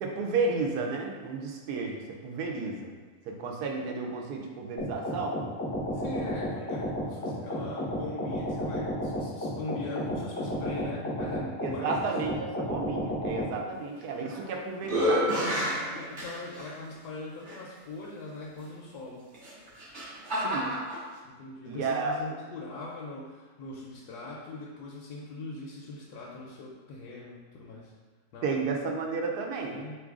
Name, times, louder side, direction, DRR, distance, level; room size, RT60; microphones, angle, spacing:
voice 1, 0.0-2.9 3.3-5.4 11.6-15.3 20.4-20.7 21.7-22.1 28.4-29.8, right 4 dB, 85° right, 0 dB, 1.2 m, -32 dB
sound 1, 4.8-13.5, equal, 15° left, 0.5 m, -32 dB
voice 2, 5.9-12.1 13.7-13.8 15.9-19.3 21.2-27.9 28.3-28.6 29.7-30.0, left 2 dB, 85° left, -4 dB, 1.2 m, -41 dB
sound 2, 14.0-14.5 14.8-16.7 17.5-17.6 19.3-21.0, equal, 40° right, 0.8 m, -29 dB
3.9 x 3.2 x 3.6 m, 1.4 s
omnidirectional pair, 1.6 m